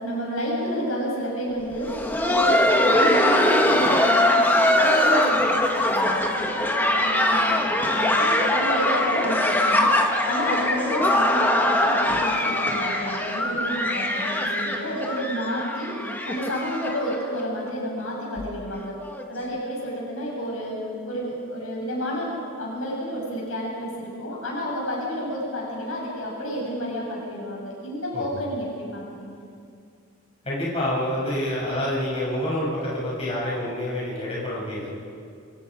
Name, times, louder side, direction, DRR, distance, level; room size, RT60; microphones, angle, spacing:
voice 1, 0.0-1.9 2.2-18.9 19.3-20.7 21.0-29.4, equal, 75° left, -3 dB, 7.0 m, -30 dB
Laughter, 1.7-17.4 17.7-17.8 18.4-18.5 19.0-19.2 20.3-20.4, left 1 dB, 10° left, 1.5 m, -22 dB
voice 2, 30.4-34.9, left 1 dB, 30° left, -7 dB, 7.7 m, -27 dB
28.5 x 25.5 x 5.1 m, 2.3 s
head